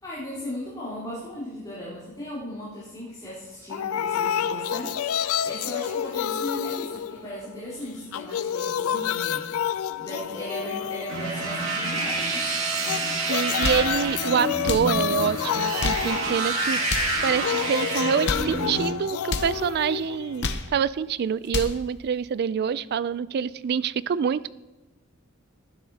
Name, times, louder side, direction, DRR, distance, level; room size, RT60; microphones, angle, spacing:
voice 1, 0.0-9.7 10.0-12.5, left 1 dB, 20° left, -13 dB, 3.9 m, -37 dB
sound 1, 3.7-7.7 8.0-11.7 12.7-20.7, left 9 dB, 85° left, 0.3 m, -29 dB
sound 2, 11.1-18.8, right 2 dB, 70° right, 2.3 m, -28 dB
voice 2, 13.2-16.8 17.2-24.5, right 7 dB, 50° right, 18 dB, 0.3 m, -26 dB
sound 3, 13.4-13.9 14.6-14.9 15.6-16.1 16.8-17.2 18.0-18.5 19.2-19.5 20.2-20.7 21.3-21.8, left 3 dB, 55° left, 0.8 m, -30 dB
18.0 x 11.5 x 2.8 m, 1.1 s
head